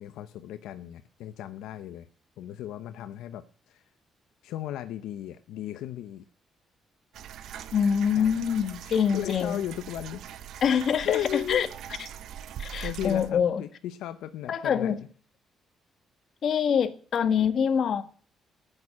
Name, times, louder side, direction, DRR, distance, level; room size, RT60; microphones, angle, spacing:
voice 1, 0.0-2.1 2.4-3.8 4.4-6.2 8.2-8.4 8.8-10.2 10.7-11.6 12.8-14.9, left 12 dB, 90° left, 0.8 m, -36 dB
sound 1, 7.1-13.3, right 9 dB, 75° right, 1.1 m, -42 dB
voice 2, 7.7-9.6 10.6-11.2 11.5-11.7 12.6-13.6 14.5-15.0 16.4-18.0, left 7 dB, 60° left, 1.6 m, -25 dB
10.5 x 8.9 x 9.7 m
cardioid pair, 90°, 0 cm